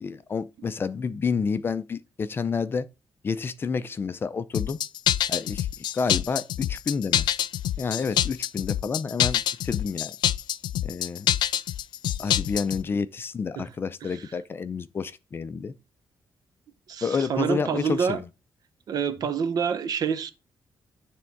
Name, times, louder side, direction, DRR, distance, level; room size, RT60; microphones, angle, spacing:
voice 1, 0.0-2.9 3.2-4.8 5.3-5.7 5.9-7.3 7.8-10.1 10.8-11.3 12.2-15.7 17.0-18.3, left 5 dB, 30° left, 0.4 m, -29 dB
sound 1, 4.5-12.8, left 11 dB, 90° left, 0.4 m, -26 dB
voice 2, 16.9-18.2 18.9-20.3, right 7 dB, 60° right, 0.8 m, -27 dB
9.6 x 3.6 x 4.5 m
wide cardioid pair, 165°, 7 cm